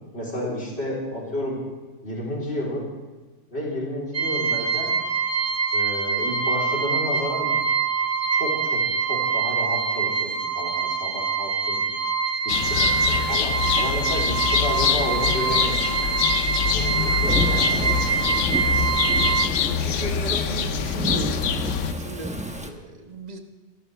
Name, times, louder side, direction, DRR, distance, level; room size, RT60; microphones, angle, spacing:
voice 1, 0.1-1.6 2.0-2.9 3.5-4.9 5.7-7.5 8.4-8.8 9.1-11.8 12.4-15.8 16.7-17.9, left 1 dB, 60° left, -3 dB, 4.1 m, -31 dB
sound 1, 4.1-19.5, right 5 dB, 90° right, 1.7 m, -24 dB
sound 2, 12.5-21.9, left 8 dB, 85° left, 1.1 m, -25 dB
Thunderstorm / Rain, 17.2-22.7, right 1 dB, 5° right, 0.9 m, -31 dB
voice 2, 19.7-21.5 22.0-23.4, right 1 dB, 35° right, 4 dB, 1.3 m, -36 dB
26.5 x 12.5 x 3.4 m, 1.3 s
omnidirectional pair, 1.2 m